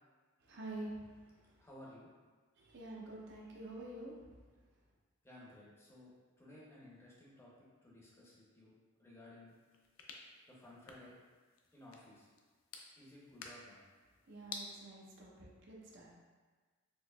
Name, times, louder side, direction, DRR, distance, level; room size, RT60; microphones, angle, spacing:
voice 1, 0.4-1.6 2.6-4.2 14.3-16.1, right 2 dB, 60° right, -3 dB, 0.6 m, -48 dB
voice 2, 1.6-2.1 5.2-7.5 7.8-9.6 10.5-11.2 11.7-12.3 13.0-13.8, left 1 dB, 10° left, -6 dB, 0.6 m, -57 dB
sound 1, 9.5-14.7, left 5 dB, 70° left, 0.4 m, -53 dB
4.3 x 2.9 x 2.3 m, 1.4 s
head